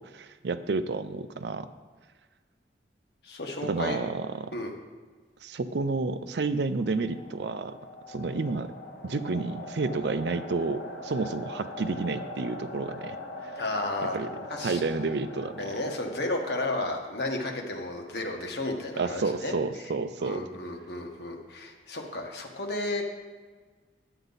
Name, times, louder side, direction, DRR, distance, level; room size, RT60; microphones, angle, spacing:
voice 1, 0.0-1.7 3.6-4.5 5.4-7.8 8.1-8.7 9.0-13.2 13.4-13.5 14.1-14.3 14.6-15.8 19.0-20.5, right 3 dB, 65° right, 11 dB, 0.5 m, -30 dB
voice 2, 3.2-4.0 4.5-4.7 13.5-14.2 14.5-14.8 15.6-19.5 20.2-23.0, left 2 dB, 65° left, 2 dB, 1.4 m, -33 dB
sound 1, 6.4-17.3, left 2 dB, 80° left, 1.7 m, -42 dB
11.0 x 9.0 x 4.1 m, 1.4 s
head